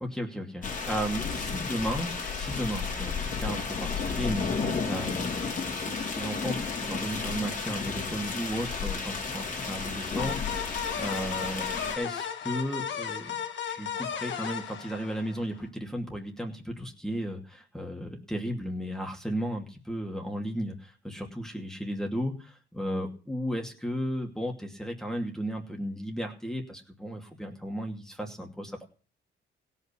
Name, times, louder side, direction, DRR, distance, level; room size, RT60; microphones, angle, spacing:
voice 1, 0.0-2.1 2.4-11.7 11.9-13.3 13.7-28.8, equal, ahead, 0 dB, 2.5 m, -34 dB
sound 1, 0.6-12.0, left 5 dB, 40° left, 3.3 m, -32 dB
sound 2, 10.2-15.6, left 8 dB, 65° left, 2.1 m, -35 dB
17.0 x 5.8 x 6.9 m, 0.38 s
cardioid pair, 90°, 20 cm